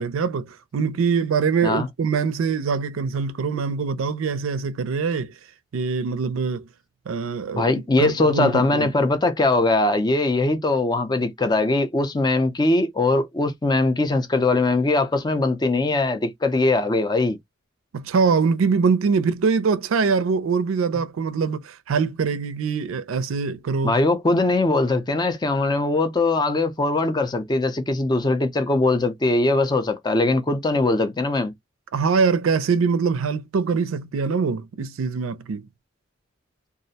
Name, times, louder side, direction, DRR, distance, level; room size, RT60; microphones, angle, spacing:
voice 1, 0.0-5.3 5.7-6.7 7.1-8.9 17.9-23.9 31.9-35.7, right 5 dB, 90° right, 0.4 m, -23 dB
voice 2, 7.5-17.4 23.8-31.5, left 2 dB, 20° left, 0.4 m, -21 dB
2.4 x 2.0 x 2.7 m
head